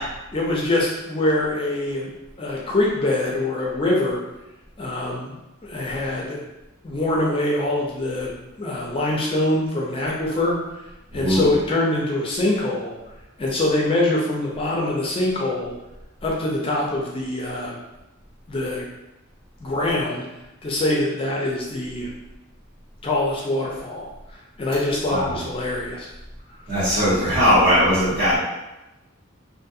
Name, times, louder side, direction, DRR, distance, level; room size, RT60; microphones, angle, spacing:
voice 1, 0.3-2.1 2.4-4.2 4.8-5.3 5.6-6.4 6.8-10.6 11.1-13.0 13.4-15.7 16.2-17.7 18.5-18.8 19.6-20.2 20.6-22.1 23.0-24.1 24.3-26.1 26.8-27.0, left 1 dB, 25° left, -3 dB, 0.4 m, -24 dB
voice 2, 11.1-11.5 25.1-25.3 26.7-28.4, equal, 50° right, -10 dB, 1.3 m, -19 dB
2.5 x 2.4 x 2.6 m, 0.98 s
head